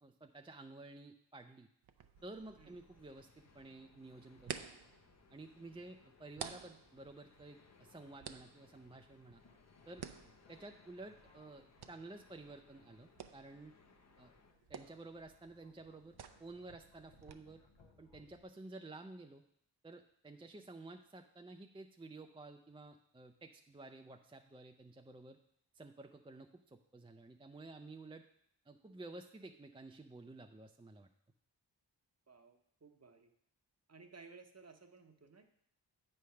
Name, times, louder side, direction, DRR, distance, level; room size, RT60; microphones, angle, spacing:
voice 1, 0.0-1.7 2.2-3.3 3.5-4.6 5.3-9.4 9.9-10.0 10.5-13.7 14.2-14.3 14.7-16.1 16.4-17.6 18.0-19.4 19.8-25.4 25.7-28.2 28.7-31.1, right 2 dB, 15° right, 5 dB, 0.4 m, -52 dB
sound 1, 1.8-17.3, right 8 dB, 60° right, 0.5 m, -53 dB
sound 2, 2.2-14.5, left 5 dB, 40° left, 0.6 m, -67 dB
sound 3, 9.3-18.4, left 3 dB, 85° left, 0.9 m, -69 dB
voice 2, 32.3-33.3 33.9-35.5, right 4 dB, 35° right, 6 dB, 0.8 m, -58 dB
8.1 x 3.3 x 5.7 m, 0.69 s
wide cardioid pair, 50°, 44 cm